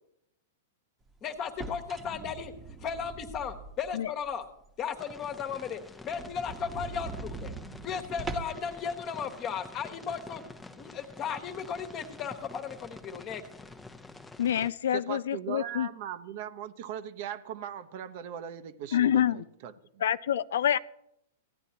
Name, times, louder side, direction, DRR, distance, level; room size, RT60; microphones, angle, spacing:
voice 1, 1.2-2.5 2.8-4.4 4.8-7.5 7.8-10.4 10.8-13.4, left 7 dB, 35° left, 7 dB, 1.3 m, -35 dB
sound 1, 1.4-4.0 4.4-4.5 4.9-5.0 5.3-5.4 5.7-5.8 6.1-8.7, right 3 dB, 15° right, 1.1 m, -41 dB
sound 2, 4.9-14.7, left 3 dB, 5° left, 0.7 m, -48 dB
voice 2, 14.4-15.9 18.9-19.4 20.0-20.8, left 10 dB, 75° left, 16 dB, 0.3 m, -27 dB
voice 3, 14.9-20.0, right 10 dB, 55° right, 11 dB, 0.8 m, -39 dB
15.5 x 9.7 x 2.9 m, 0.78 s
hypercardioid pair, 120°, 0 cm